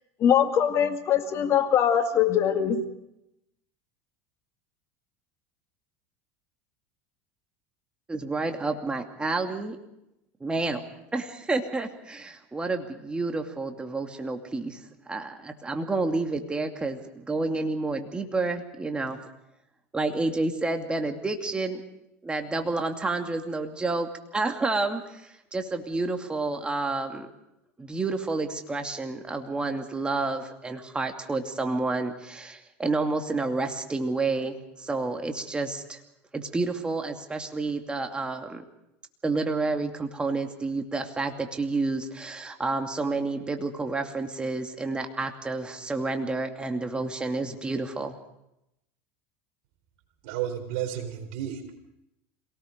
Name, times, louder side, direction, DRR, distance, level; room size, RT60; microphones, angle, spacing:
voice 1, 0.2-2.8, left 9 dB, 45° left, 7 dB, 2.2 m, -22 dB
voice 2, 8.1-9.8 10.4-10.8 11.1-14.8 15.1-19.2 19.9-21.8 22.2-27.3 27.8-36.0 36.3-38.6 39.2-48.1, right 3 dB, 15° right, 4 dB, 2.5 m, -29 dB
voice 3, 50.2-51.8, right 10 dB, 70° right, 7 dB, 4.2 m, -32 dB
27.0 x 18.5 x 5.2 m, 0.84 s
supercardioid pair, 105°, 7 cm